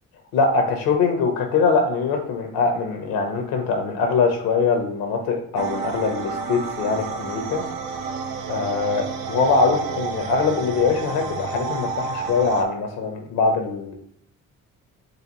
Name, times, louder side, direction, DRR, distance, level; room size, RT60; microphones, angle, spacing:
voice 1, 0.3-7.6 8.5-13.9, left 4 dB, 90° left, 4 dB, 0.9 m, -22 dB
sound 1, 5.6-12.6, right 5 dB, 90° right, 0.6 m, -30 dB
4.1 x 3.4 x 3.0 m, 0.64 s
supercardioid pair, 65°, 33 cm